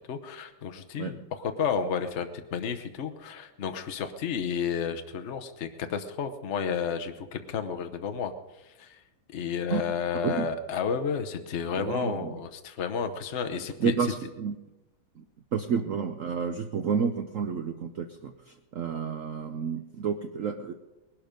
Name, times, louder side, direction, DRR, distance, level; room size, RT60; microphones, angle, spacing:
voice 1, 0.0-8.3 8.8-9.0 9.3-13.9, left 6 dB, 45° left, 7 dB, 1.0 m, -31 dB
voice 2, 10.1-10.5 11.7-12.4 13.8-14.6 15.2-15.3 15.5-20.7, right 6 dB, 75° right, 7 dB, 0.7 m, -30 dB
20.0 x 12.0 x 5.2 m, 1.1 s
omnidirectional pair, 2.3 m